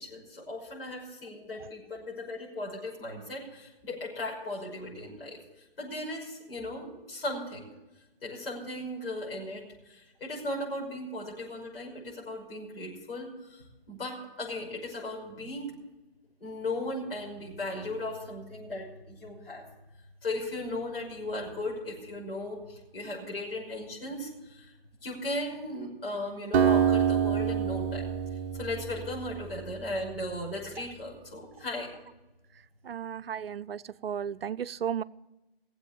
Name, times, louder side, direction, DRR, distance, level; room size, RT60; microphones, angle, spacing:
voice 1, 0.0-5.4 5.8-7.7 8.2-15.7 16.4-19.6 20.2-24.7 25.0-28.1 28.5-31.9, left 1 dB, 65° left, 6.1 m, -37 dB
Acoustic guitar, 26.5-30.1, right 8 dB, 20° right, 1.1 m, -27 dB
voice 2, 32.8-35.0, right 8 dB, 65° right, 0.5 m, -34 dB
18.5 x 7.9 x 7.1 m
figure-of-eight pair, 140°, 31 cm